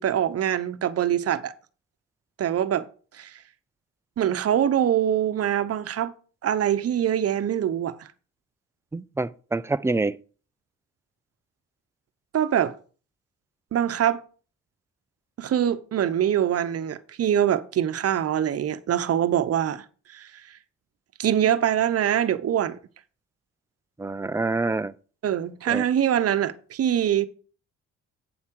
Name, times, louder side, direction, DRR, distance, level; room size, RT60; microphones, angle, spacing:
voice 1, 0.0-1.5 2.4-2.8 3.1-3.4 4.2-6.1 6.4-8.1 12.3-12.7 13.7-14.2 15.4-20.4 21.2-22.8 25.2-27.3, right 10 dB, 50° right, 0.9 m, -24 dB
voice 2, 8.9-10.2 24.0-24.9 25.7-25.8, right 3 dB, 10° right, 0.4 m, -26 dB
8.8 x 7.2 x 4.6 m
cardioid pair, 90°, 30 cm